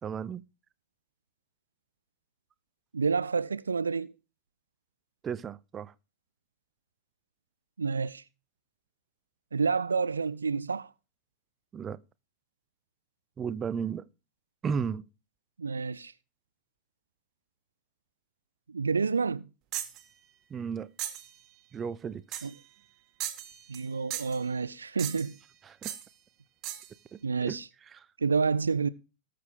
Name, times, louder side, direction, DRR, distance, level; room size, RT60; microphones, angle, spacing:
voice 1, 0.0-0.4 5.2-5.9 11.7-12.0 13.4-14.1 14.6-15.1 20.5-20.9 21.7-22.5 25.6-25.9 27.1-27.6 27.9-28.1, right 6 dB, 25° right, 0.6 m, -34 dB
voice 2, 2.9-4.1 7.8-8.2 9.5-10.9 15.6-16.1 18.7-19.5 22.4-22.5 23.7-25.4 27.2-27.6 28.2-28.9, right 5 dB, 75° right, 0.5 m, -29 dB
sound 1, 19.7-20.0 21.0-21.3 22.3-22.6 23.2-23.9 24.1-24.4 25.0-25.4 25.8-26.1 26.6-26.9, right 12 dB, 40° right, 1.8 m, -37 dB
19.0 x 6.7 x 3.8 m
figure-of-eight pair, 90°, 0 cm